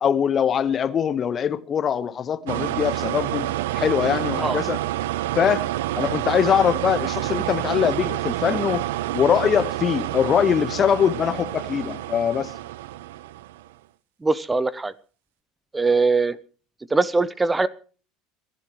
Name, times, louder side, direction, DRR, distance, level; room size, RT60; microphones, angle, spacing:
voice 1, 0.0-3.5 3.7-4.8 5.4-5.7 6.0-8.8 9.1-12.5, left 8 dB, 35° left, 1.3 m, -22 dB
sound 1, 2.5-13.7, right 15 dB, 65° right, 0.6 m, -28 dB
voice 2, 14.2-14.9 15.7-16.4 16.9-17.7, right 3 dB, 15° right, 0.8 m, -21 dB
28.5 x 12.0 x 3.2 m
figure-of-eight pair, 70°, 0 cm